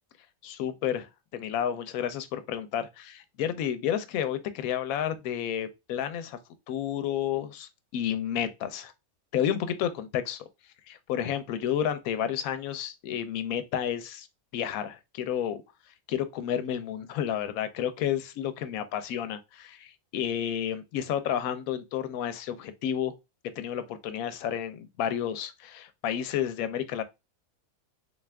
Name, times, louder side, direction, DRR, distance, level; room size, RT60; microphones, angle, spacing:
voice 1, 0.4-6.4 6.7-8.9 9.3-10.5 10.9-14.3 14.5-15.6 16.1-23.1 23.6-27.0, left 9 dB, 75° left, 1.0 m, -31 dB
3.8 x 2.4 x 3.3 m
omnidirectional pair, 1.5 m